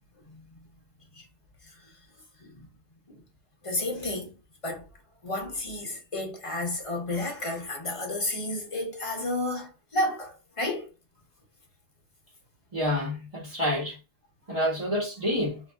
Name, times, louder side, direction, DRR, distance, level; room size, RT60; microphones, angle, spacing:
voice 1, 3.6-4.3 4.6-4.8 5.2-10.8, left 1 dB, 40° left, 0.5 m, -31 dB
voice 2, 12.7-14.0 14.5-15.6, left 1 dB, 30° right, 1.1 m, -28 dB
2.9 x 2.5 x 2.2 m
omnidirectional pair, 1.3 m